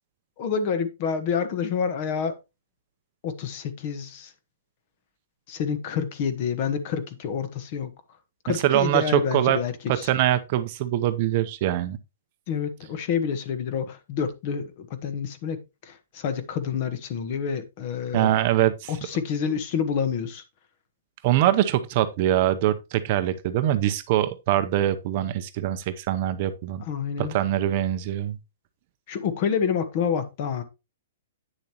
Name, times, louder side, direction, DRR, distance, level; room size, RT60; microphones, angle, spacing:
voice 1, 0.4-2.3 3.2-4.3 5.5-7.9 8.4-10.1 12.5-18.3 18.9-20.4 26.8-27.4 29.1-30.6, left 7 dB, 35° left, 1.2 m, -28 dB
voice 2, 8.5-9.6 9.9-12.0 18.1-18.9 21.2-26.8 27.2-28.4, right 13 dB, 35° right, 0.7 m, -23 dB
9.1 x 6.9 x 2.9 m
hypercardioid pair, 165°, 0 cm